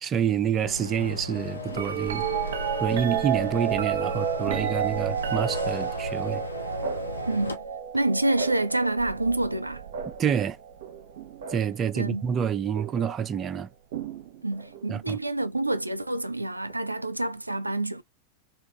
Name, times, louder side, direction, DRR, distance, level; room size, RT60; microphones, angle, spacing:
voice 1, 0.0-2.3 2.8-6.4 10.0-10.6 11.5-13.7 14.9-15.2, right 8 dB, 25° right, 0.4 m, -28 dB
sound 1, 0.5-7.6, left 2 dB, 80° left, 0.6 m, -36 dB
sound 2, 1.3-1.8 2.3-2.8 3.3-3.8 4.3-4.8 5.3-5.8, left 6 dB, 25° left, 0.9 m, -41 dB
sound 3, 1.7-11.8 12.8-13.2 13.9-14.9 16.7-16.8, right 8 dB, 60° right, 0.7 m, -31 dB
voice 2, 7.3-7.6 7.9-9.8 12.0-12.2 14.4-18.0, right 2 dB, 85° right, 0.4 m, -27 dB
3.4 x 2.3 x 3.3 m
figure-of-eight pair, 90°, 0 cm